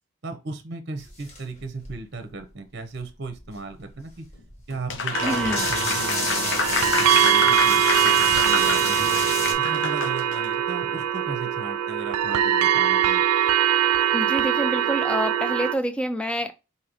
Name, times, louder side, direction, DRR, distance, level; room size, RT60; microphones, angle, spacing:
voice 1, 0.2-4.3 4.7-9.2 9.6-13.2, right 3 dB, 50° right, 0.8 m, -36 dB
sound 1, 1.0-2.3 2.9-3.0 3.3-9.5, left 2 dB, 30° left, 1.3 m, -30 dB
Applause, 4.9-10.5, left 5 dB, 55° left, 0.6 m, -29 dB
sound 2, 5.1-15.7, right 10 dB, 85° right, 0.3 m, -22 dB
voice 2, 5.2-5.6 14.1-16.5, equal, 5° left, 0.5 m, -27 dB
5.3 x 2.8 x 3.0 m
head